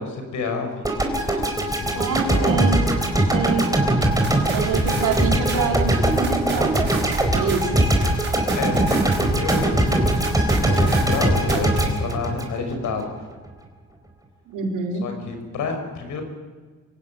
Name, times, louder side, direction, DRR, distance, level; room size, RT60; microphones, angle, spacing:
voice 1, 0.0-2.6 4.4-5.0 5.3-5.7 8.6-13.2 15.0-16.2, left 4 dB, 75° left, 5 dB, 6.1 m, -30 dB
sound 1, 0.8-13.1, right 1 dB, 10° right, 4.3 m, -22 dB
voice 2, 1.9-2.8 3.3-3.7 4.5-8.0 14.5-15.1, right 5 dB, 85° right, 2 dB, 4.0 m, -26 dB
sound 2, 4.0-11.9, right 1 dB, 40° right, 6.7 m, -25 dB
24.5 x 16.0 x 9.5 m, 1.4 s
cardioid pair, 90°, 30 cm